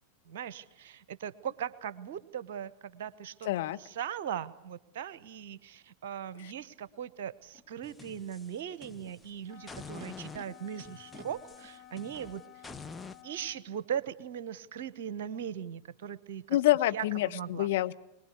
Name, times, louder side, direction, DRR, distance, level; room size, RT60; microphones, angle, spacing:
voice 1, 0.3-3.5 3.7-12.4 13.2-16.6 16.9-17.7, right 9 dB, 55° right, 17 dB, 1.0 m, -39 dB
voice 2, 3.4-3.8 16.5-17.9, left 15 dB, 55° left, 10 dB, 0.8 m, -27 dB
Animal, 6.6-6.7 7.4-7.9 8.8-10.4 11.1-12.4, left 1 dB, 20° right, 2.9 m, -54 dB
sound 1, 7.8-9.3 9.7-13.2, left 4 dB, 10° left, 0.8 m, -47 dB
Wind instrument woodwind instrument, 9.5-13.8, left 12 dB, 30° left, 1.3 m, -53 dB
23.5 x 20.5 x 8.3 m, 0.88 s
figure-of-eight pair, 90°, 0 cm